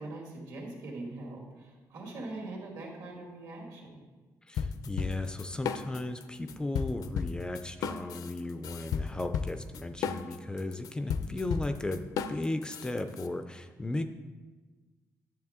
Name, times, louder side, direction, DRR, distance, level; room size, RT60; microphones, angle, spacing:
voice 1, 0.0-4.0, right 2 dB, 70° right, -1 dB, 2.3 m, -42 dB
voice 2, 4.5-14.0, left 2 dB, 15° left, 8 dB, 0.3 m, -35 dB
sound 1, 4.6-6.2 6.5-13.3, left 6 dB, 70° left, 0.5 m, -34 dB
10.5 x 7.4 x 3.6 m, 1.3 s
cardioid pair, 155°, 6 cm